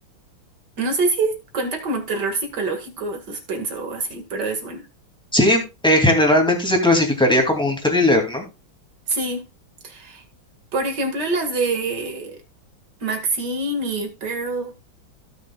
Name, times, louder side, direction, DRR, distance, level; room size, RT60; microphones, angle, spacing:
voice 1, 0.8-4.9 9.1-9.5 9.8-10.2 10.7-12.4 13.0-14.7, right 3 dB, 55° right, 2.4 m, -25 dB
voice 2, 5.3-8.4, left 1 dB, ahead, 2.4 m, -18 dB
17.0 x 6.5 x 2.3 m
omnidirectional pair, 2.2 m